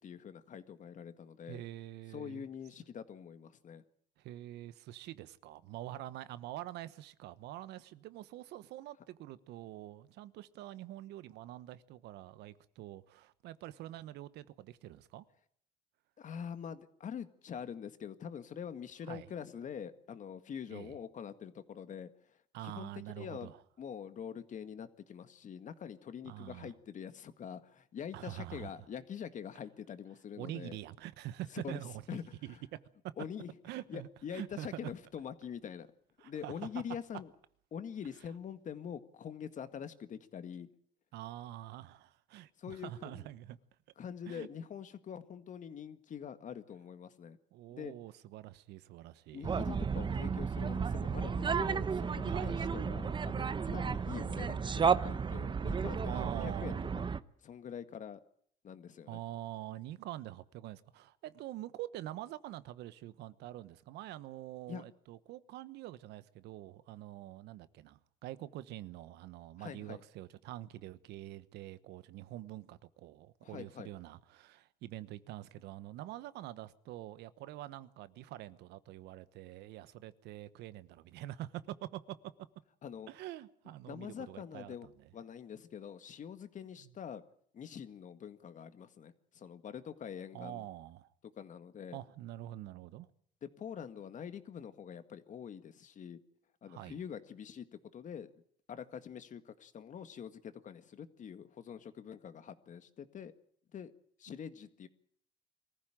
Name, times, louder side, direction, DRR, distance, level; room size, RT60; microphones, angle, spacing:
voice 1, 0.0-1.6 2.1-3.8 16.2-22.4 22.6-22.9 23.2-23.5 23.8-30.8 31.5-31.8 32.1-32.6 33.2-33.5 33.9-35.9 36.2-37.3 37.7-40.7 42.6-43.3 44.0-47.4 47.7-47.9 49.3-57.1 57.4-58.2 58.6-59.2 64.7-64.8 69.6-70.0 73.4-73.9 82.8-83.1 83.8-84.9 85.1-87.2 87.5-90.7 91.4-92.0 93.4-96.2 96.6-97.7 97.9-98.3 98.7-103.3 103.7-103.9 104.2-104.9, left 8 dB, 45° left, 1.9 m, -45 dB
voice 2, 1.5-2.4 4.2-15.2 19.1-19.3 20.7-21.0 22.5-23.6 26.2-26.7 28.1-28.7 30.4-32.5 33.6-34.9 36.2-36.5 41.1-43.6 44.3-44.5 47.5-49.5 52.2-52.6 56.0-56.9 59.1-82.2 83.1-85.1 86.8-86.9 90.3-91.1 91.9-93.1 96.7-97.0, right 14 dB, 85° right, 1.2 m, -46 dB
sound 1, 49.4-57.2, right 6 dB, 30° right, 0.9 m, -33 dB
23.0 x 15.0 x 9.1 m
cardioid pair, 110°, 17 cm